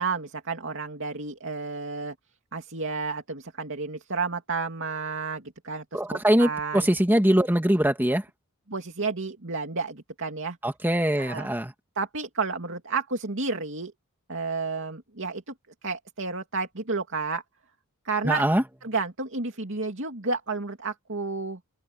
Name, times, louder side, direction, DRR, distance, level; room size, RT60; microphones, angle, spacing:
voice 1, 0.0-2.1 2.5-6.9 8.7-10.6 11.2-11.5 12.0-13.9 14.3-15.5 15.8-17.4 18.0-18.4 18.8-21.6, right 4 dB, 55° right, 2.7 m, -31 dB
voice 2, 5.9-8.2 10.6-11.7 18.2-18.6, right 1 dB, 10° right, 2.2 m, -22 dB
open air
head